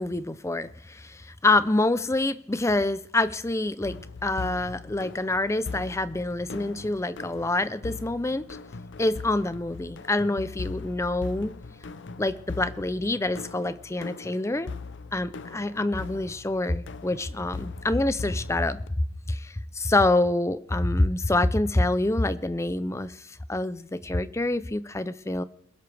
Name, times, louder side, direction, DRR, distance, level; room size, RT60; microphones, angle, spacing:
voice 1, 0.0-4.0 4.2-8.4 9.0-11.5 12.2-14.7 15.1-18.8 19.3-25.4, left 2 dB, 15° left, 0.5 m, -26 dB
sound 1, 3.8-18.9, left 4 dB, 60° left, 0.6 m, -40 dB
21.0 x 11.5 x 3.4 m
head